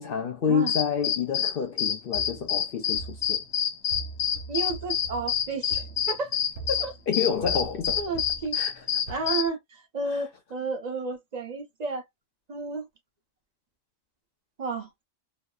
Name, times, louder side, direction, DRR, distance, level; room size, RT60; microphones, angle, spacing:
voice 1, 0.0-3.4 6.7-8.1 8.5-8.9 10.1-10.3, left 7 dB, 60° left, 0.6 m, -29 dB
sound 1, 0.7-9.5, left 9 dB, 80° left, 1.0 m, -27 dB
sound 2, 2.1-9.3, right 4 dB, 80° right, 1.0 m, -42 dB
voice 2, 4.5-6.4 6.8-6.9 8.0-8.6 9.1-12.0 12.5-12.9 14.6-14.9, right 4 dB, 40° right, 0.7 m, -32 dB
3.0 x 2.0 x 2.3 m
omnidirectional pair, 1.3 m